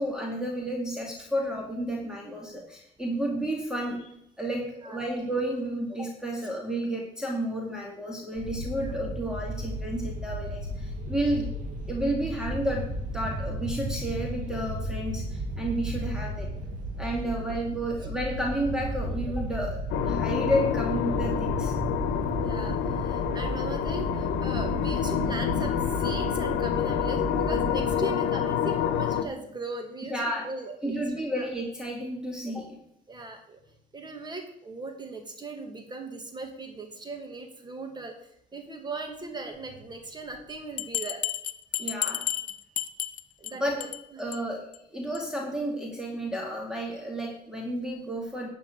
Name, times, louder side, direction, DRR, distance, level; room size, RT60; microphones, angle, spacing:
voice 1, 0.0-4.1 4.4-11.5 11.9-16.5 17.0-21.7 30.1-30.5 30.8-32.8 41.8-42.3 43.5-43.8 44.2-48.5, right 1 dB, 5° right, -1 dB, 2.3 m, -31 dB
sound 1, 8.4-28.0, right 1 dB, 45° right, 2.2 m, -34 dB
sound 2, 19.9-29.2, left 9 dB, 90° left, 1.0 m, -28 dB
voice 2, 22.4-31.0 31.4-31.5 33.1-33.6 33.9-38.1 38.5-41.2 43.4-44.2, right 3 dB, 25° right, 4 dB, 2.2 m, -38 dB
Bell, 40.8-43.5 43.8-44.0 44.3-44.4 44.7-44.8 45.1-45.2, left 11 dB, 50° left, 0.7 m, -31 dB
11.5 x 4.5 x 8.1 m, 0.76 s
cardioid pair, 110°, 17 cm